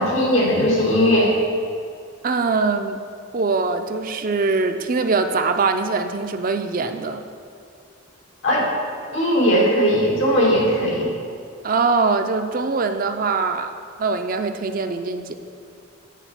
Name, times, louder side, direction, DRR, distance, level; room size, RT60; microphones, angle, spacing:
voice 1, 0.0-1.3 8.4-8.7 9.1-11.1, equal, 85° left, -4 dB, 2.4 m, -18 dB
voice 2, 2.2-3.0 3.3-7.2 11.6-13.7 14.0-15.3, right 4 dB, 45° right, 7 dB, 0.5 m, -22 dB
9.1 x 4.2 x 7.4 m, 2.4 s
head